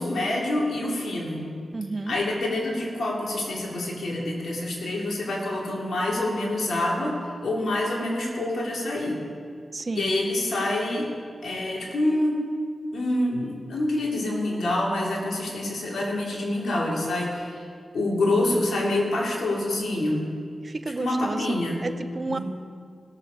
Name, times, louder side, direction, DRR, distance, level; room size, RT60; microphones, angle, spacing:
voice 1, 0.0-1.4 2.1-9.2 9.9-11.1 11.4-12.4 12.9-17.6 17.9-20.3 21.0-21.8 22.3-22.4, left 1 dB, 75° left, -3 dB, 2.8 m, -26 dB
voice 2, 1.7-2.2 9.7-10.1 20.6-22.4, right 3 dB, 45° right, 10 dB, 0.7 m, -31 dB
17.5 x 6.9 x 4.9 m, 2.1 s
cardioid pair, 40°, 0 cm